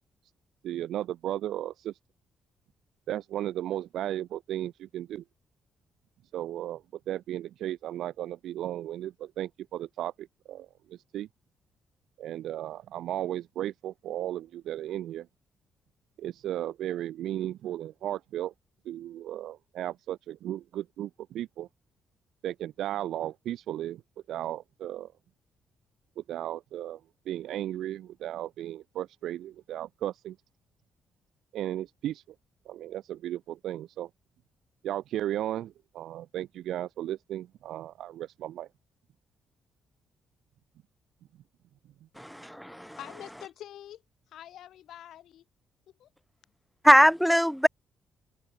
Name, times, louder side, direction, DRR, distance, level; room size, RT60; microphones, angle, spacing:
voice 1, 0.6-2.0 3.1-5.2 6.3-11.3 12.2-15.3 16.2-18.5 18.9-21.7 22.4-24.0 24.3-25.1 26.2-27.0 27.3-30.4 31.5-32.2 32.7-34.1 34.8-38.7, right 12 dB, 75° right, 2.1 m, -35 dB
voice 2, 42.2-43.0 46.8-47.7, equal, ahead, 0.4 m, -21 dB
voice 3, 43.0-45.5 46.0-46.1, left 12 dB, 70° left, 7.2 m, -46 dB
cardioid pair, 160°, 0 cm